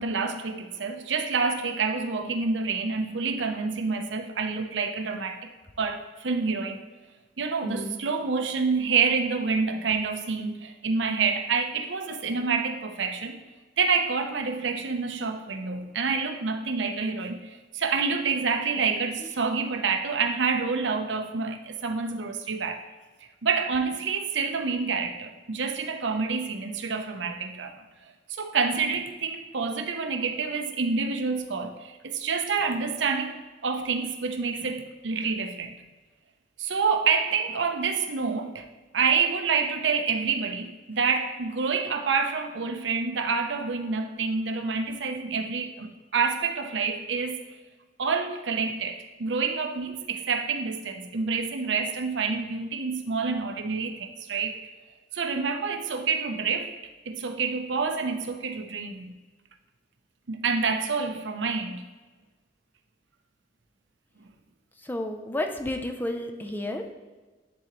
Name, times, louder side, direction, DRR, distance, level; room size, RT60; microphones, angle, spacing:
voice 1, 0.0-5.5 5.8-6.8 7.4-13.4 13.8-22.8 23.4-27.7 28.0-35.7 36.6-38.7 38.9-47.4 48.0-54.6 55.1-56.7 57.1-59.1 60.3-61.8, right 5 dB, 75° right, 6 dB, 0.6 m, -28 dB
voice 2, 7.6-8.0 64.8-66.9, left 1 dB, 10° left, 4 dB, 0.5 m, -31 dB
10.5 x 3.9 x 3.0 m, 1.3 s
head